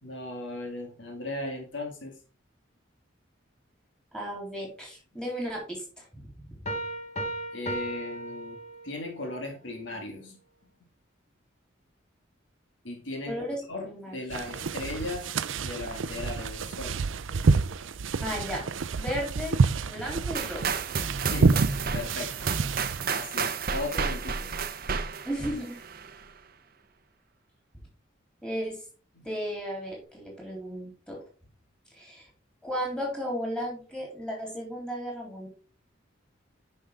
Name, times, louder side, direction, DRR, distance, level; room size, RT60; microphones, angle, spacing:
voice 1, 0.0-2.2 7.5-10.4 12.8-13.4 13.7-17.0 21.0-22.5 23.0-25.0 29.1-29.3, left 2 dB, 75° left, 2 dB, 2.2 m, -37 dB
voice 2, 4.1-6.1 6.4-6.5 13.3-14.2 18.2-20.7 25.3-25.8 28.4-28.8 29.2-31.2 31.9-32.3 32.6-35.5, equal, 5° left, -2 dB, 3.6 m, -35 dB
sound 1, 6.7-9.2, right 1 dB, 35° left, 1.4 m, -35 dB
sound 2, 14.3-23.0, right 4 dB, 85° right, 0.5 m, -28 dB
sound 3, 20.3-26.2, right 5 dB, 50° right, 0.7 m, -31 dB
10.0 x 5.5 x 3.7 m, 0.39 s
head